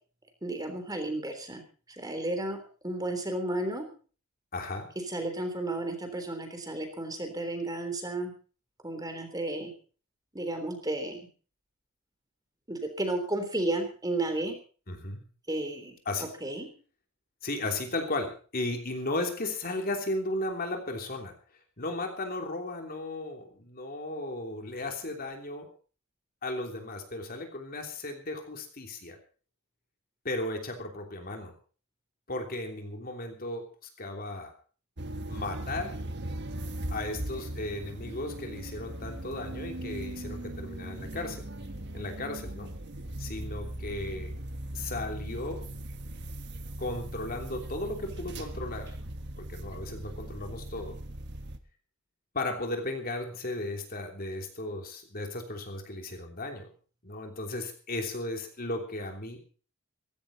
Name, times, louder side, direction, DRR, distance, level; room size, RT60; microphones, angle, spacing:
voice 1, 0.4-1.6 2.0-2.6 2.8-3.8 5.1-8.3 8.8-9.7 10.3-11.2 12.7-14.6 15.5-15.9 16.4-16.7, right 2 dB, 20° right, 7 dB, 3.5 m, -32 dB
voice 2, 4.5-4.9 14.9-15.2 16.0-16.3 17.4-21.3 21.8-25.7 26.4-29.2 30.2-31.5 32.3-33.7 34.0-34.5 35.3-35.9 36.9-41.4 41.9-42.7 43.2-44.3 44.7-45.6 46.8-48.9 49.4-51.0 52.3-56.7 57.0-59.4, left 2 dB, 45° left, 4 dB, 3.2 m, -35 dB
sound 1, 35.0-51.6, right 1 dB, 55° right, 1.5 m, -39 dB
16.5 x 16.0 x 4.2 m, 0.39 s
head